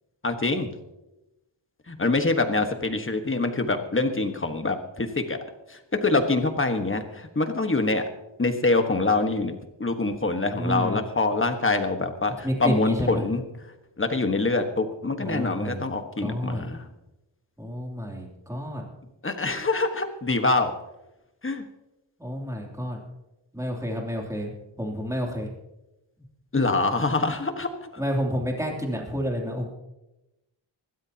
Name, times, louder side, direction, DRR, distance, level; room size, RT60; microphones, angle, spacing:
voice 1, 0.2-0.8 1.9-5.4 5.7-8.0 8.4-9.5 9.8-13.4 14.0-16.9 19.2-20.8 21.4-21.6 26.5-28.0, left 3 dB, 25° left, 6 dB, 1.4 m, -25 dB
voice 2, 10.6-11.0 12.4-13.2 15.2-15.8 16.2-16.6 17.6-18.8 22.2-23.0 23.5-24.5 24.8-25.5 28.0-29.7, equal, 5° right, 0 dB, 2.9 m, -29 dB
25.5 x 13.0 x 2.9 m, 0.95 s
wide cardioid pair, 125°, 47 cm